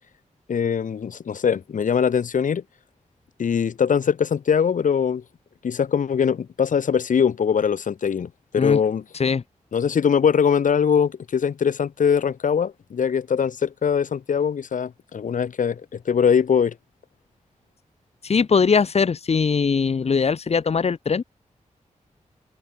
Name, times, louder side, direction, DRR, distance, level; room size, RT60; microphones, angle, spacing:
voice 1, 0.5-2.6 3.4-5.2 5.6-9.0 9.7-16.7, left 7 dB, 80° left, 2.2 m, -22 dB
voice 2, 18.2-21.2, left 5 dB, 55° left, 2.6 m, -21 dB
wide cardioid pair, 160°, 13 cm